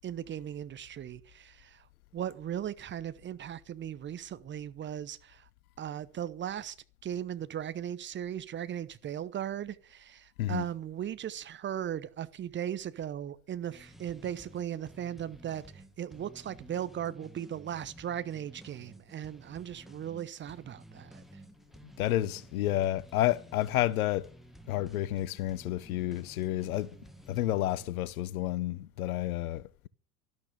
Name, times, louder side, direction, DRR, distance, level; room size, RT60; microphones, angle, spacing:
voice 1, 0.0-1.9 2.1-5.5 5.8-6.8 7.0-21.2, right 10 dB, 25° right, 0.9 m, -37 dB
sound 1, 13.7-27.9, right 1 dB, ahead, 1.8 m, -53 dB
voice 2, 22.0-24.3 24.7-27.0 27.3-29.9, left 14 dB, 60° left, 1.0 m, -30 dB
12.5 x 12.0 x 6.8 m
figure-of-eight pair, 80°, 47 cm